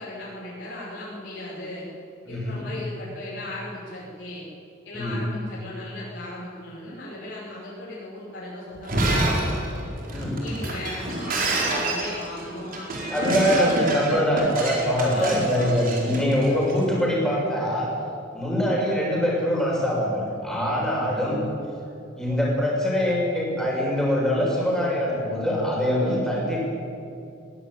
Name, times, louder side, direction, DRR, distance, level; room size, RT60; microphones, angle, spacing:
voice 1, 0.0-1.8 2.3-4.4 4.8-9.5 10.4-14.1 15.1-15.7, left 1 dB, 65° left, -8 dB, 6.2 m, -37 dB
voice 2, 2.3-2.6 4.9-5.2 10.1-10.4 13.1-17.9 18.3-21.4 22.2-26.6, equal, 5° left, -4 dB, 6.5 m, -23 dB
Shatter, 8.7-16.8, right 2 dB, 45° right, 4.5 m, -28 dB
21.0 x 16.0 x 9.5 m, 2.6 s
head